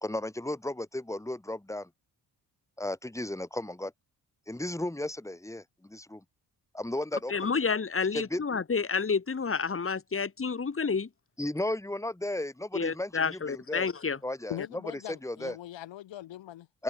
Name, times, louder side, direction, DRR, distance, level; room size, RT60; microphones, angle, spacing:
voice 1, 0.0-1.9 2.8-3.9 4.5-6.2 6.7-7.5 8.1-8.4 11.4-14.6 15.2-15.6 16.7-16.8, left 1 dB, 5° left, 2.6 m, -34 dB
voice 2, 7.3-11.1 12.7-14.2, left 5 dB, 30° left, 2.0 m, -29 dB
voice 3, 14.5-16.8, left 13 dB, 75° left, 2.1 m, -41 dB
open air
supercardioid pair, 55°, 45 cm